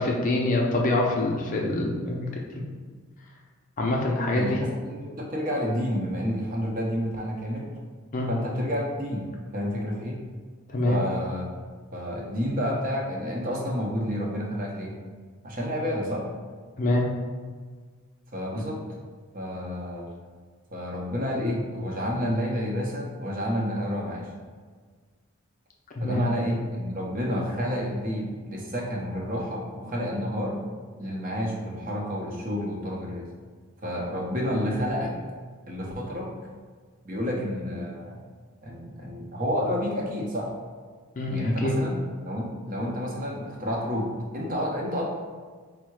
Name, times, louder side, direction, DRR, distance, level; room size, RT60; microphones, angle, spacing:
voice 1, 0.0-2.3 3.8-4.6 8.1-8.3 10.7-11.0 16.8-17.1 26.0-26.2 41.2-41.7, left 2 dB, 40° left, -1 dB, 0.5 m, -25 dB
voice 2, 4.3-7.7 8.3-10.2 10.9-11.5 11.9-14.9 15.4-16.3 18.3-18.8 19.3-20.1 20.7-24.3 26.0-30.6 31.0-33.3 33.8-35.1 35.7-36.3 37.0-38.2 38.6-40.5 41.3-42.0 42.2-45.0, equal, 40° right, -1 dB, 0.7 m, -30 dB
4.5 x 2.1 x 4.5 m, 1.5 s
head